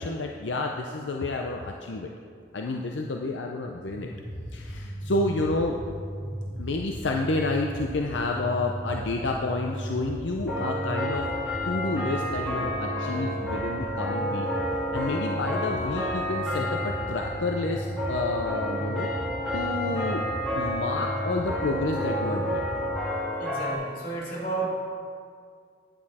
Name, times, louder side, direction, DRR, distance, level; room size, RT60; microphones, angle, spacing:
voice 1, 0.0-2.1 2.5-4.1 4.5-5.7 6.6-11.3 11.7-14.5 14.9-19.1 19.5-20.2 20.5-22.6, left 2 dB, 80° left, 1 dB, 0.6 m, -30 dB
sound 1, 3.9-23.0, right 1 dB, 35° right, 1.6 m, -36 dB
sound 2, 9.1-9.9 10.5-23.7, equal, ahead, 2.3 m, -31 dB
voice 2, 23.4-24.7, right 3 dB, 50° left, -6 dB, 2.9 m, -32 dB
10.0 x 8.6 x 4.2 m, 2.2 s
head